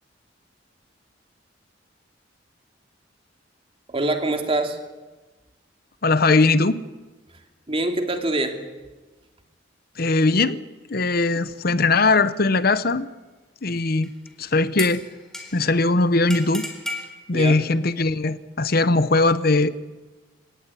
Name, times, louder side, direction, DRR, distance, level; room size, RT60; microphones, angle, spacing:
voice 1, 3.9-4.8 7.7-8.6 17.3-17.6, right 2 dB, 30° right, 5 dB, 2.8 m, -24 dB
voice 2, 6.0-6.8 10.0-10.6 10.9-13.1 13.6-14.1 14.4-15.0 15.5-16.7 17.3-19.7, left 3 dB, 55° left, 14 dB, 1.0 m, -20 dB
sound 1, 14.0-14.3 14.8-15.8 16.3-17.1, left 1 dB, 5° left, 3.9 m, -34 dB
27.0 x 17.5 x 9.9 m, 1.2 s
head